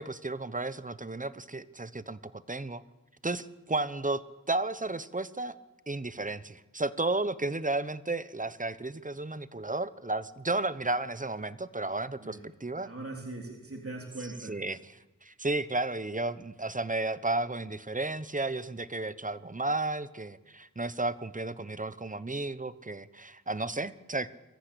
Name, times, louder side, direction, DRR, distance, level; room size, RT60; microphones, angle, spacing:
voice 1, 0.0-2.8 3.2-4.2 4.5-5.5 5.9-12.9 14.2-24.3, right 2 dB, 25° right, 15 dB, 1.0 m, -33 dB
voice 2, 12.8-14.6, right 2 dB, 45° right, 0 dB, 3.6 m, -40 dB
23.0 x 14.5 x 8.5 m, 1.1 s
cardioid pair, 40°, 32 cm